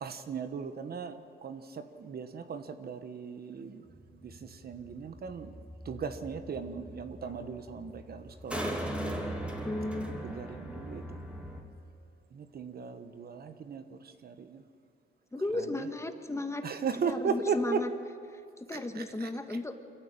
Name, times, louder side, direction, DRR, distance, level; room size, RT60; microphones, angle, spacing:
voice 1, 0.0-3.8 4.1-5.5 5.8-8.8 9.9-11.2 12.3-14.6 15.5-15.6 16.6-17.8 18.7-19.6, right 6 dB, 50° right, 9 dB, 1.3 m, -37 dB
sound 1, 3.9-11.6, right 1 dB, 5° right, 3.0 m, -40 dB
voice 2, 9.6-10.4 15.3-16.7 17.1-17.9 18.3-19.7, left 2 dB, 15° left, 7 dB, 1.6 m, -35 dB
25.0 x 14.5 x 8.8 m, 2.4 s
cardioid pair, 90°, 20 cm